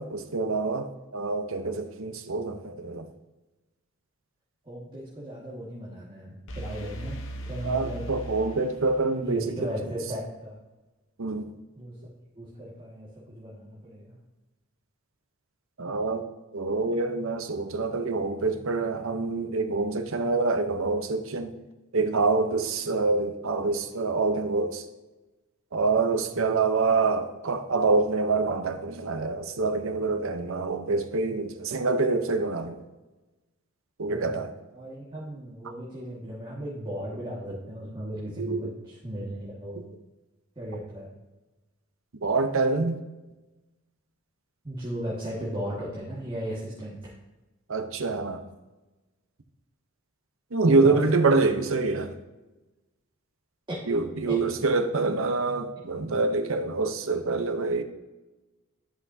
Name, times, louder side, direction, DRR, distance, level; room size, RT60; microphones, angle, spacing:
voice 1, 0.0-3.1 7.6-9.7 11.2-11.5 15.8-16.3 16.5-21.5 21.9-24.8 25.7-32.8 34.0-34.5 38.4-38.6 39.8-39.9 42.2-43.0 47.7-48.4 50.5-52.1 53.9-57.8, right 3 dB, 65° right, 0.7 m, -26 dB
voice 2, 2.3-2.7 4.6-7.2 7.5-8.0 9.2-10.6 11.7-14.2 26.2-26.5 34.1-39.8 40.6-41.1 44.6-47.1 50.6-51.4 53.7-54.4 56.0-56.1, equal, 20° right, 1.7 m, -37 dB
sound 1, 6.5-9.4, right 1 dB, 60° left, 1.0 m, -39 dB
13.5 x 5.9 x 2.7 m
head